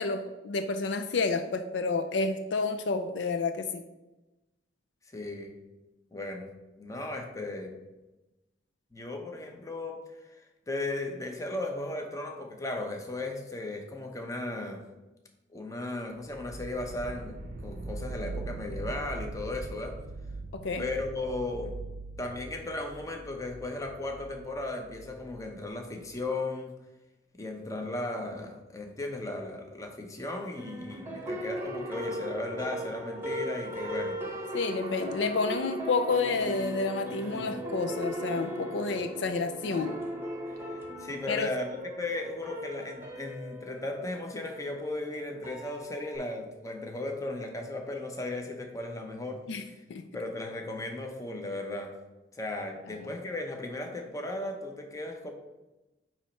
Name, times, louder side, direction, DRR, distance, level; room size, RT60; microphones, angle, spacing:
voice 1, 0.0-3.8 20.5-20.8 34.5-40.0 41.3-41.5 49.5-49.6 49.9-50.1 53.0-53.1, left 4 dB, 65° left, 8 dB, 0.4 m, -30 dB
voice 2, 5.1-5.5 6.1-6.5 6.8-7.7 8.9-10.4 10.7-14.8 15.5-17.3 17.6-20.0 20.8-21.7 22.2-26.7 27.4-34.5 37.3-37.5 38.8-39.0 40.5-49.8 50.1-51.9 52.3-55.3, left 2 dB, 15° left, 3 dB, 0.9 m, -36 dB
sound 1, 16.3-26.2, right 2 dB, 45° right, 0.6 m, -42 dB
sound 2, 30.6-46.2, equal, 10° right, 1.0 m, -38 dB
9.1 x 3.1 x 4.4 m, 1.0 s
head